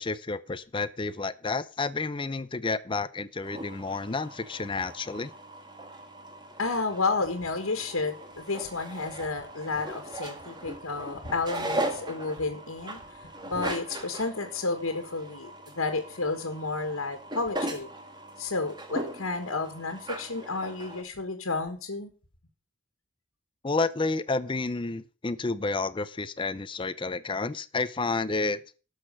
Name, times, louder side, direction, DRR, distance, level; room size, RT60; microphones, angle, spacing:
voice 1, 0.0-5.3 23.6-28.6, left 3 dB, 25° left, 14 dB, 0.5 m, -30 dB
sound 1, 3.4-21.0, right 1 dB, 20° right, 1.5 m, -39 dB
voice 2, 6.6-13.0 13.4-17.9 18.4-22.1, left 3 dB, 90° left, 5 dB, 1.6 m, -31 dB
12.0 x 6.5 x 6.3 m, 0.37 s
head